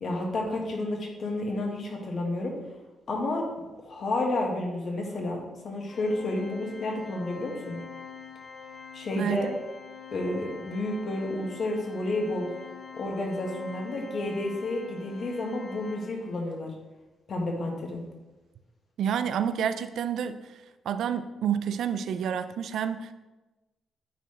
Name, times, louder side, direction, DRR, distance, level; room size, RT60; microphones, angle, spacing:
voice 1, 0.0-2.5 3.1-3.4 3.8-7.8 8.9-9.5 10.1-12.5 12.9-16.7 17.3-18.0, left 2 dB, 55° left, 0 dB, 1.6 m, -31 dB
Organ, 5.9-16.6, left 6 dB, 40° left, 0.6 m, -45 dB
voice 2, 9.2-9.6 19.0-20.4 20.9-23.1, right 8 dB, 75° right, 11 dB, 0.3 m, -29 dB
9.2 x 4.3 x 3.3 m, 1.1 s
cardioid pair, 80°, 0 cm